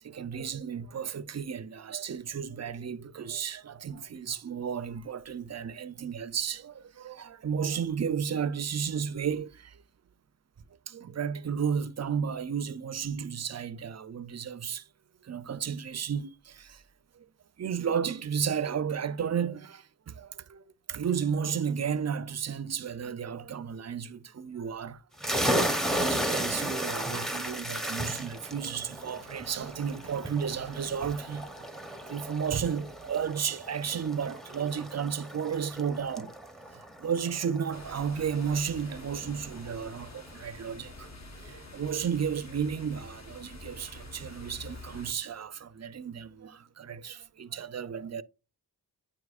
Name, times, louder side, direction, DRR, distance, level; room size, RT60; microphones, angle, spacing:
voice 1, 0.0-9.8 10.9-14.8 15.2-16.8 17.2-17.3 17.6-25.0 25.9-31.7 32.1-36.3 36.7-41.1 41.4-48.2, right 7 dB, 40° right, 0.5 m, -33 dB
sound 1, 25.2-38.5, equal, ahead, 0.7 m, -34 dB
sound 2, 37.7-45.1, left 2 dB, 40° left, 1.3 m, -47 dB
8.9 x 4.8 x 2.4 m
wide cardioid pair, 75°, 42 cm